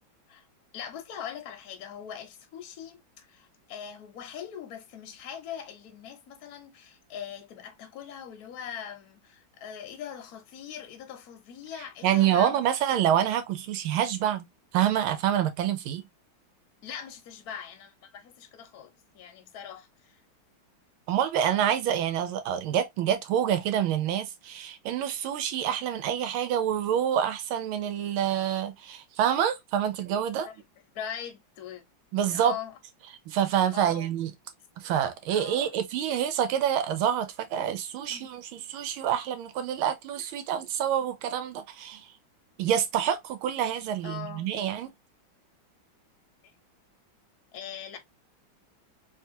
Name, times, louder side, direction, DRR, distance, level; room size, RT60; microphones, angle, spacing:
voice 1, 0.7-12.6 12.9-13.0 16.8-20.2 30.4-30.5 30.9-31.8 32.3-32.7 33.7-34.1 35.3-35.7 37.5-37.7 38.1-38.3 44.0-44.5 46.4-46.5 47.5-48.0, left 8 dB, 60° left, 1.1 m, -41 dB
voice 2, 12.0-14.5 14.7-16.1 21.1-30.5 32.1-32.5 33.3-34.3 34.8-42.1 42.6-44.9, right 10 dB, 90° right, 1.6 m, -27 dB
3.6 x 2.9 x 2.7 m
omnidirectional pair, 2.2 m